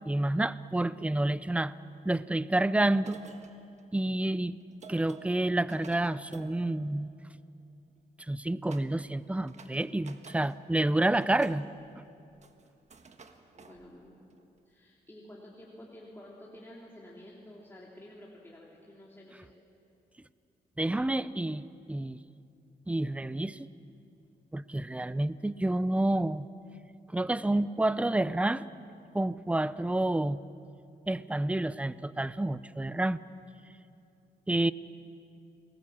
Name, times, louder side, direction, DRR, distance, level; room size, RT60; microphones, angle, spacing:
voice 1, 0.1-1.7 2.0-3.2 3.9-4.6 4.9-7.1 8.3-11.6 20.8-22.2 22.9-23.7 24.5-26.5 27.1-28.6 29.1-30.4 31.1-33.2 34.5-34.7, right 1 dB, 5° right, 16 dB, 0.6 m, -29 dB
voice 2, 0.8-1.1 13.5-14.2 14.6-19.5, left 1 dB, 15° left, -4 dB, 3.4 m, -51 dB
sound 1, 3.0-7.6 8.7-9.2 9.4-10.6 10.9-14.5, right 5 dB, 40° right, 1.6 m, -53 dB
29.5 x 21.0 x 7.4 m, 2.6 s
cardioid pair, 95°, 17 cm